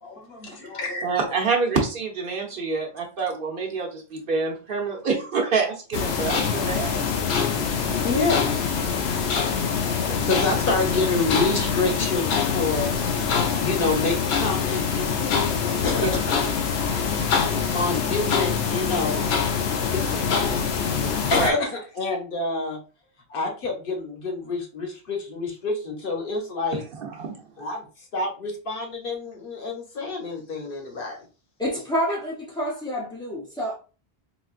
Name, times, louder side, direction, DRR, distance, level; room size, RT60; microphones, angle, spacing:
voice 1, 0.0-1.3 7.5-12.9 13.6-15.1 15.8-16.4 17.7-19.2 19.8-20.5 21.3-22.8 23.3-26.8 27.6-27.9 28.1-31.2, left 3 dB, 60° left, 1.0 m, -28 dB
voice 2, 1.0-7.1 10.1-10.3 16.0-16.1 21.3-21.5 27.0-27.4, right 4 dB, 60° right, 0.9 m, -27 dB
sound 1, 5.9-21.5, left 6 dB, 85° left, 0.9 m, -24 dB
voice 3, 31.6-33.7, equal, 10° left, 0.3 m, -28 dB
3.9 x 2.4 x 2.4 m
omnidirectional pair, 1.0 m